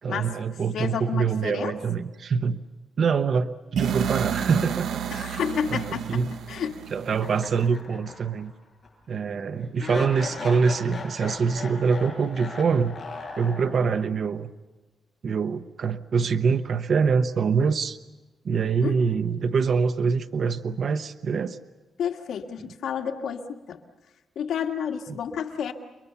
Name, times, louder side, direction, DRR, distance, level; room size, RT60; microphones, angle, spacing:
voice 1, 0.0-2.6 3.0-5.4 5.7-6.3 6.9-8.5 9.1-13.0 13.4-14.5 15.2-18.0 18.4-21.6, right 5 dB, 50° right, 10 dB, 0.9 m, -25 dB
voice 2, 0.7-1.7 5.1-6.2 6.5-6.8 18.8-19.0 22.0-23.8 24.3-25.7, left 8 dB, 80° left, 3 dB, 1.8 m, -30 dB
sound 1, 3.8-7.7, right 8 dB, 80° right, 0.9 m, -31 dB
sound 2, 7.2-8.5 8.8-8.9 9.8-14.1, left 3 dB, 25° left, 6.7 m, -38 dB
30.0 x 22.5 x 6.9 m, 1.2 s
wide cardioid pair, 140°, 0 cm